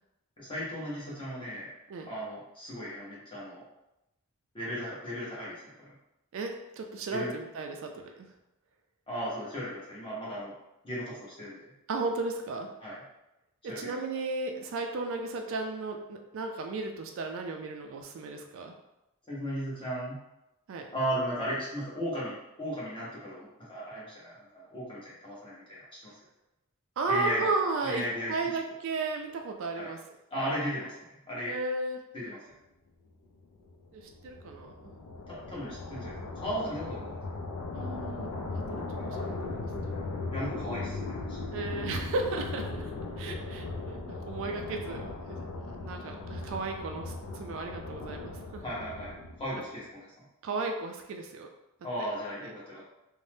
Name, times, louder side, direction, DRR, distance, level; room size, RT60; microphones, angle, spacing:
voice 1, 0.4-1.7 2.1-3.6 4.5-5.9 7.1-7.3 9.1-10.5 10.8-11.6 12.8-13.0 13.7-14.0 19.3-20.2 20.9-26.1 27.1-27.4 27.8-28.6 29.7-29.9 30.3-31.0 31.3-31.5 32.1-32.4 35.3-37.2 38.2-38.3 39.0-39.2 40.3-41.5 48.6-49.1 49.4-50.1 51.8-52.9, equal, 25° left, -7 dB, 0.9 m, -36 dB
voice 2, 6.3-8.3 11.9-12.7 13.7-18.7 20.7-20.9 27.0-30.0 31.5-32.0 33.9-34.9 37.7-39.7 41.5-48.6 50.4-51.5 52.0-52.1 52.4-52.5, right 3 dB, 60° right, 4 dB, 0.3 m, -35 dB
sound 1, 33.4-49.6, left 3 dB, 80° left, 0.4 m, -38 dB
2.6 x 2.1 x 3.3 m, 0.92 s
head